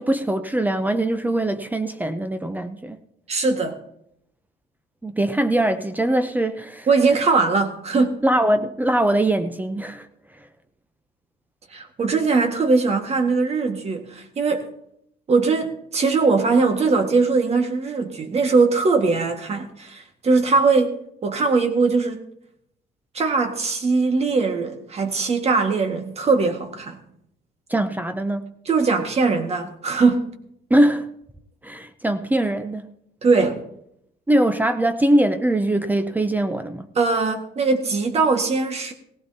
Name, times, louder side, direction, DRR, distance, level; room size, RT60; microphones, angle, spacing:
voice 1, 0.0-3.0 5.0-6.9 8.2-10.1 27.7-28.5 30.7-31.1 31.6-32.9 34.3-36.9, right 1 dB, 10° right, 0.6 m, -22 dB
voice 2, 3.3-3.8 6.9-8.2 11.7-14.7 15.3-22.2 23.1-27.0 28.6-30.3 33.2-33.6 36.9-38.9, right 4 dB, 40° right, 1.7 m, -21 dB
17.5 x 16.0 x 2.8 m
cardioid pair, 110°, 17 cm